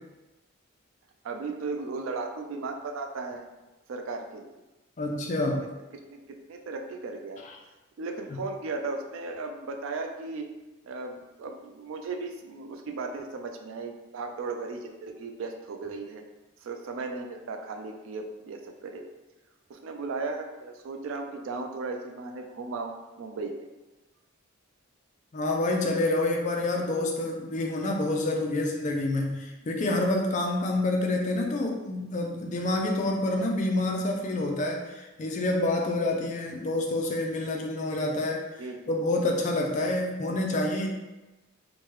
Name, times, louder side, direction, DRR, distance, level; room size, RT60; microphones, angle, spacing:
voice 1, 1.2-3.5 3.9-4.6 5.6-5.7 6.1-6.2 6.5-7.4 8.0-10.5 10.8-16.2 16.6-19.0 19.7-23.7 38.6-38.9, right 3 dB, 70° right, 4 dB, 0.3 m, -36 dB
voice 2, 5.0-5.7 25.3-38.5 38.9-40.9, left 2 dB, 35° left, 1 dB, 0.3 m, -27 dB
3.2 x 2.1 x 3.0 m, 1.1 s
head